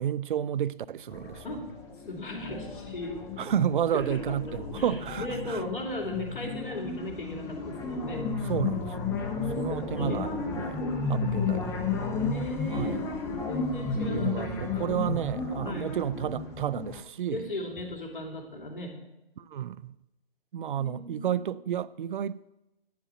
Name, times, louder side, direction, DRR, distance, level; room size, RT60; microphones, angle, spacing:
voice 1, 0.0-1.6 3.4-5.6 8.4-9.0 9.6-11.8 12.7-13.1 13.9-17.5 19.4-20.0 20.5-22.5, right 9 dB, 55° right, 0.4 m, -31 dB
sound 1, 1.1-17.0, left 4 dB, 10° left, 0.6 m, -33 dB
voice 2, 2.1-3.2 3.9-8.3 9.7-10.5 12.3-13.1 13.5-15.0 15.6-15.9 17.3-18.9 20.8-21.5, left 2 dB, 55° left, 2.6 m, -37 dB
10.5 x 4.8 x 7.6 m
figure-of-eight pair, 135°, 30 cm